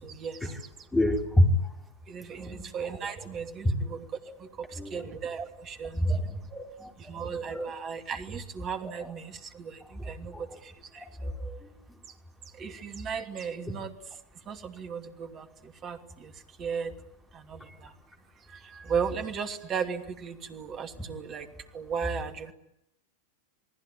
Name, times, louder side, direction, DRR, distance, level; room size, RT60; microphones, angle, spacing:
voice 1, 0.0-0.5 2.1-4.0 4.4-6.4 7.0-11.3 12.6-13.9 14.5-16.3 16.6-16.9 17.3-17.9 18.5-21.5 21.7-22.5, right 6 dB, 30° right, 6 dB, 2.8 m, -36 dB
voice 2, 0.9-1.5 2.4-2.6 4.8-5.0 6.0-6.2 6.5-6.9 7.5-7.7 8.8-8.9 10.3-10.4 11.4-11.6, left 1 dB, 10° left, 2 dB, 4.0 m, -26 dB
29.0 x 19.5 x 9.5 m, 0.80 s
figure-of-eight pair, 90°, 0 cm